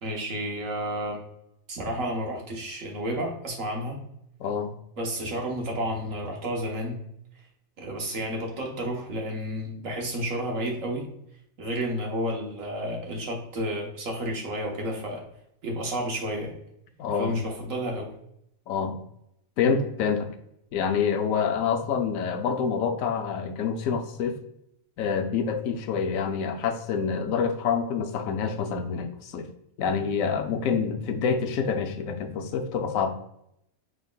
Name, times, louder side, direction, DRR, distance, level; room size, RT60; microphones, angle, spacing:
voice 1, 0.0-1.2 1.7-4.0 5.0-7.0 7.8-11.0 11.6-15.2 15.6-16.5 17.1-18.1, equal, 70° right, 0 dB, 1.4 m, -31 dB
voice 2, 4.4-4.7 17.0-17.3 18.7-19.0 19.6-20.3 20.7-24.4 25.0-29.5 29.8-33.1, left 6 dB, 75° left, 6 dB, 1.0 m, -27 dB
5.4 x 3.5 x 2.2 m, 0.76 s
omnidirectional pair, 1.4 m